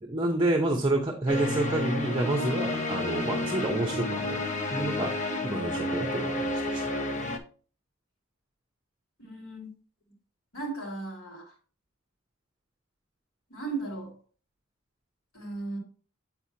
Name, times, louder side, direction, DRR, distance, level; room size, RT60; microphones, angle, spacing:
voice 1, 0.0-5.1 5.4-6.9, right 2 dB, 20° right, 4 dB, 0.7 m, -29 dB
sound 1, 1.3-7.4, left 1 dB, 35° left, 0.7 m, -30 dB
voice 2, 9.2-9.7 10.5-11.5 13.5-14.1 15.3-15.8, right 3 dB, 85° left, -1 dB, 3.0 m, -36 dB
8.7 x 4.3 x 2.8 m, 0.39 s
head